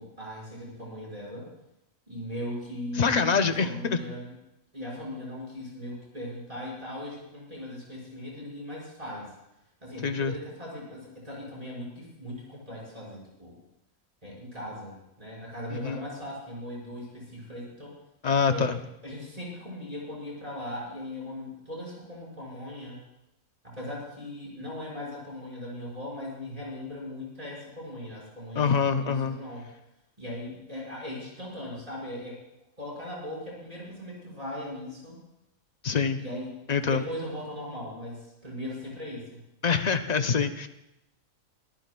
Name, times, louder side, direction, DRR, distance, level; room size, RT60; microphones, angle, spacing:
voice 1, 0.0-1.5 2.1-4.3 4.7-9.3 9.8-13.6 14.2-17.9 18.5-18.7 19.0-23.0 23.6-28.7 29.0-29.7 30.2-32.4 32.8-35.2 36.2-36.5 36.8-39.4, left 1 dB, 25° right, -4 dB, 5.7 m, -39 dB
voice 2, 2.9-4.0 10.0-10.3 15.7-16.0 18.2-18.8 28.6-29.4 35.8-36.2 36.7-37.0 39.6-40.7, left 5 dB, 45° left, 8 dB, 0.6 m, -25 dB
23.0 x 14.0 x 2.3 m, 0.87 s
omnidirectional pair, 1.4 m